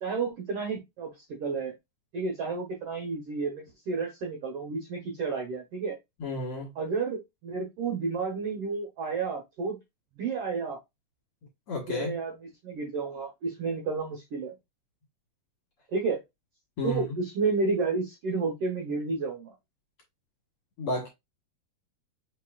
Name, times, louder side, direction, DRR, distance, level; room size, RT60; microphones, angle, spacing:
voice 1, 0.0-1.7 2.1-6.0 6.8-9.8 10.2-10.8 11.9-12.3 12.6-14.5 15.9-16.2 16.8-19.5, right 4 dB, 70° right, 1.4 m, -31 dB
voice 2, 6.2-6.7 11.7-12.2 16.8-17.2 20.8-21.1, left 2 dB, 55° left, 1.8 m, -32 dB
5.5 x 3.8 x 2.3 m
omnidirectional pair, 3.8 m